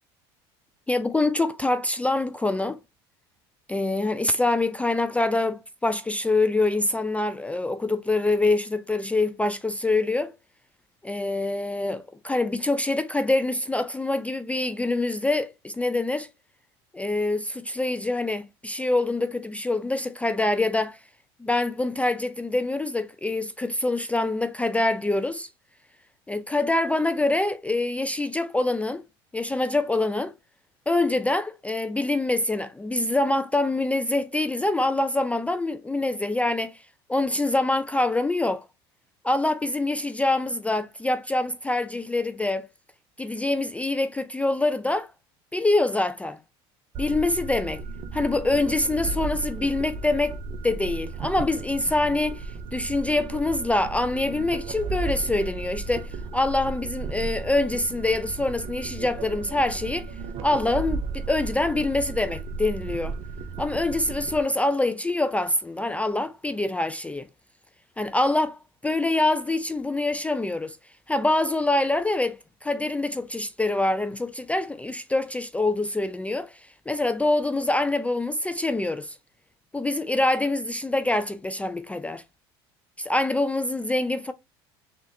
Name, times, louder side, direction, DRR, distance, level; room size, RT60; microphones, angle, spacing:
voice 1, 0.9-2.8 3.7-10.3 11.0-16.3 16.9-21.0 21.4-25.5 26.3-29.0 29.3-30.3 30.9-36.8 37.1-38.6 39.2-42.7 43.2-45.1 45.5-46.4 47.0-47.8 48.1-50.4 50.6-60.1 60.4-63.2 63.6-67.3 68.0-70.8 71.1-79.2 79.7-82.2 83.0-84.3, left 2 dB, 10° left, 0.3 m, -25 dB
sound 1, 46.9-64.4, right 4 dB, 50° right, 0.6 m, -34 dB
3.8 x 3.2 x 2.6 m
supercardioid pair, 95°, 13 cm